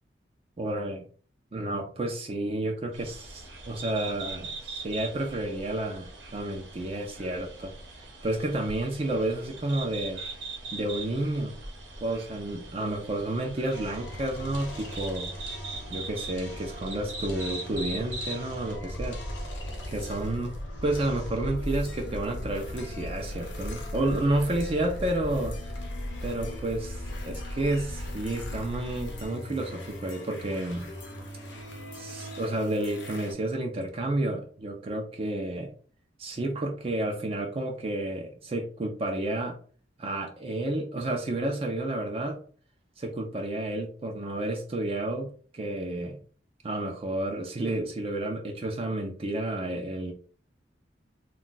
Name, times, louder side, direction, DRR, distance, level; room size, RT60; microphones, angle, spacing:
voice 1, 0.6-1.0 1.5-7.7 8.0-10.2 10.7-11.6 12.0-15.3 15.9-19.4 19.9-20.6 20.8-25.6 26.2-30.8 31.9-35.7 36.2-39.6 40.0-42.4 43.0-46.2 46.6-50.1, right 1 dB, 35° right, 2 dB, 0.4 m, -31 dB
sound 1, 2.9-18.8, right 2 dB, 85° right, 0.9 m, -41 dB
sound 2, 13.7-33.3, left 1 dB, 85° left, 0.7 m, -41 dB
sound 3, 18.7-29.3, equal, 35° left, 0.6 m, -38 dB
2.3 x 2.2 x 3.8 m, 0.43 s
head